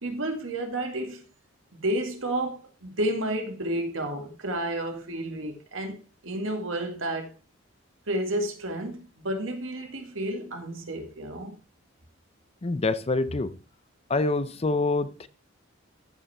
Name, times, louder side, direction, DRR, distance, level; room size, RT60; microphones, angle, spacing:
voice 1, 0.0-1.2 1.7-6.0 6.2-7.3 8.1-11.5, right 1 dB, 85° right, 2.2 m, -31 dB
voice 2, 12.6-13.5 14.1-15.3, left 3 dB, 30° left, 0.6 m, -26 dB
14.0 x 5.6 x 4.3 m
head